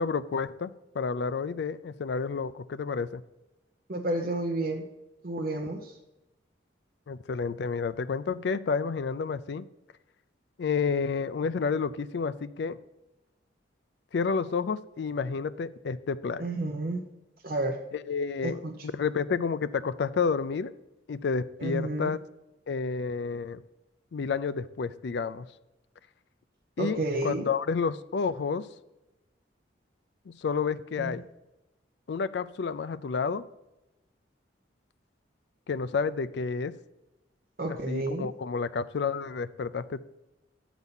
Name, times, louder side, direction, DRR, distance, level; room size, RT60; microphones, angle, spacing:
voice 1, 0.0-3.2 7.1-9.7 10.6-12.8 14.1-16.5 17.9-18.6 18.9-20.7 21.1-22.2 22.7-23.6 24.1-25.5 26.8-28.7 30.3-31.3 32.1-33.4 35.7-36.7 37.7-40.0, left 5 dB, 65° left, 14 dB, 0.4 m, -30 dB
voice 2, 3.9-4.9 5.2-6.0 16.4-17.0 17.4-17.8 18.4-18.8 21.6-22.1 26.8-27.5 31.0-31.1 37.6-38.3, right 2 dB, 50° right, 0 dB, 0.7 m, -31 dB
8.2 x 4.0 x 6.9 m, 0.95 s
head